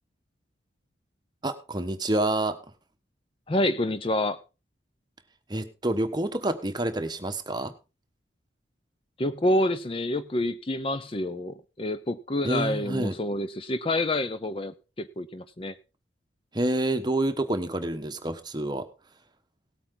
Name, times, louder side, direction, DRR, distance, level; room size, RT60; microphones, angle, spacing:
voice 1, 1.4-2.6 5.5-7.7 12.4-13.2 16.5-18.9, right 1 dB, 20° right, 8 dB, 1.2 m, -28 dB
voice 2, 3.5-4.4 9.2-15.7, left 1 dB, 30° left, 12 dB, 0.6 m, -28 dB
18.0 x 8.6 x 3.9 m, 0.31 s
head